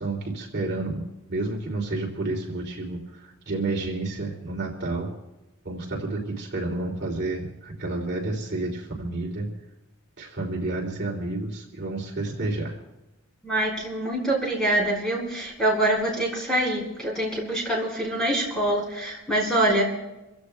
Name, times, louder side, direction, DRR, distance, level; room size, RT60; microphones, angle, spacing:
voice 1, 0.0-5.1 5.6-9.5 10.2-12.8, right 2 dB, 50° right, -1 dB, 2.8 m, -30 dB
voice 2, 13.4-19.8, right 1 dB, 5° left, -3 dB, 4.8 m, -25 dB
28.5 x 16.0 x 2.3 m, 1.0 s
head